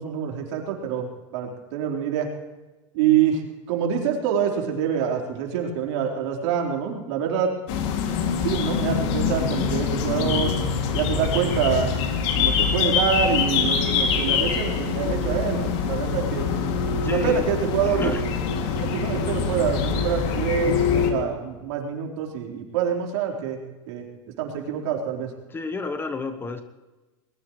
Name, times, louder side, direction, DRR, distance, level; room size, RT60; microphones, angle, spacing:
voice 1, 0.0-2.3 2.9-3.4 3.7-7.5 8.4-10.5 10.9-12.0 12.3-16.5 17.0-18.2 18.7-23.6 23.9-24.1 24.4-25.3, right 8 dB, 65° right, 1 dB, 4.2 m, -26 dB
sound 1, 7.7-21.1, left 6 dB, 55° left, 2.7 m, -24 dB
voice 2, 16.7-17.5 17.8-18.3 20.9-21.2 25.5-26.6, left 4 dB, 15° left, 9 dB, 1.0 m, -32 dB
21.0 x 20.0 x 3.2 m, 1.1 s
supercardioid pair, 145°, 16 cm